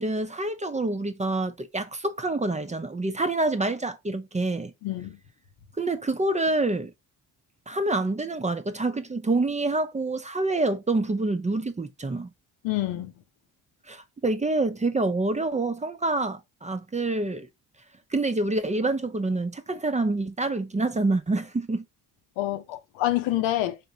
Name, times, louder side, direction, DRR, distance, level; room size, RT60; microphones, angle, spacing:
voice 1, 0.0-4.7 5.8-6.9 7.7-12.3 13.9-17.5 18.1-21.8, right 2 dB, 15° right, 0.5 m, -27 dB
voice 2, 4.8-5.2 12.6-13.1 22.4-23.8, left 14 dB, 90° left, 0.8 m, -27 dB
4.1 x 3.4 x 2.7 m
supercardioid pair, 70°, 43 cm